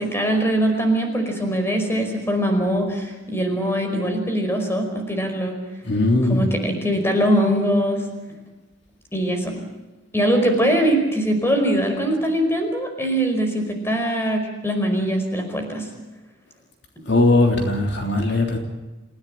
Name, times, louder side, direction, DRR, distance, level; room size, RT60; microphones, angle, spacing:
voice 1, 0.0-5.6 6.3-8.0 9.1-9.5 10.1-15.9, right 1 dB, 10° left, 4 dB, 4.9 m, -22 dB
voice 2, 5.8-6.4 17.1-18.6, left 2 dB, 60° left, 2 dB, 3.2 m, -19 dB
28.5 x 16.0 x 8.9 m, 1.2 s
head